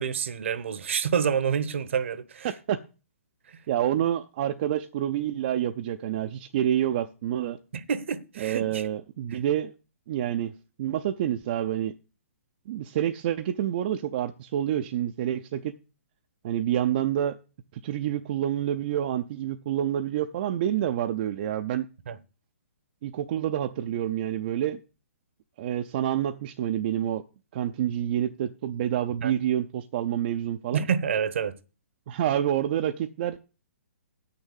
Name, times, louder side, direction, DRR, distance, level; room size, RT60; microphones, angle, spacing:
voice 1, 0.0-2.5 7.7-8.8 9.3-9.4 22.1-22.2 29.2-29.3 30.7-31.5, right 7 dB, 60° right, 0.9 m, -28 dB
voice 2, 2.4-2.8 3.7-7.6 8.4-9.7 10.1-10.5 10.8-11.9 12.7-15.7 16.4-17.4 17.8-21.9 23.0-24.8 25.6-27.2 27.5-30.9 32.1-33.4, right 11 dB, 40° right, 0.5 m, -28 dB
7.9 x 6.6 x 7.3 m
figure-of-eight pair, 125°, 8 cm